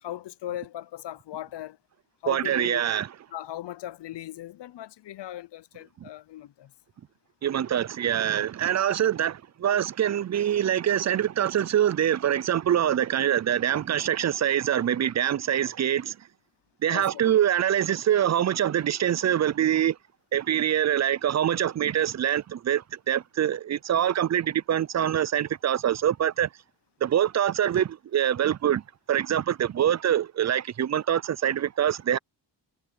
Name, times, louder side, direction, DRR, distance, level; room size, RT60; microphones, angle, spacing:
voice 1, 0.0-1.8 2.2-2.9 3.3-6.7 16.9-17.2, left 13 dB, 75° left, 0.7 m, -38 dB
voice 2, 2.3-3.1 6.0-6.1 7.4-16.2 16.8-20.0 20.3-26.5 27.0-28.8 29.1-32.2, right 10 dB, 40° right, 0.5 m, -24 dB
cardioid pair, 80°, 42 cm